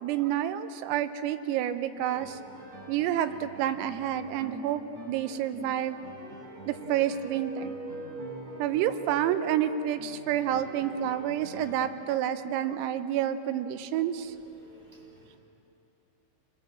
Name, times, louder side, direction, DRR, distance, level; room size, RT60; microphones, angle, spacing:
voice 1, 0.0-2.4 2.9-6.0 6.7-7.7 8.6-14.3, right 10 dB, 90° right, 10 dB, 3.5 m, -29 dB
sound 1, 2.0-11.9, right 1 dB, 40° right, 4.4 m, -47 dB
sound 2, 6.8-10.4, right 2 dB, 35° left, 4.0 m, -42 dB
voice 2, 14.7-15.4, right 1 dB, 10° right, -1 dB, 3.4 m, -56 dB
28.0 x 21.0 x 7.6 m, 3.0 s
omnidirectional pair, 5.9 m